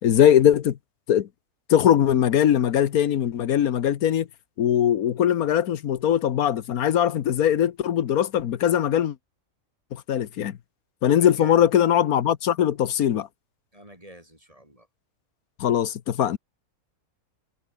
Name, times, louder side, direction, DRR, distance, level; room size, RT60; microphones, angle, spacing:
voice 1, 0.0-0.8 1.1-1.3 1.7-4.3 4.6-9.1 9.9-10.6 11.0-13.3 15.6-16.4, left 10 dB, 90° left, 1.4 m, -21 dB
voice 2, 11.1-11.6 13.7-14.9, right 1 dB, 25° right, 8.2 m, -48 dB
omnidirectional pair, 1.5 m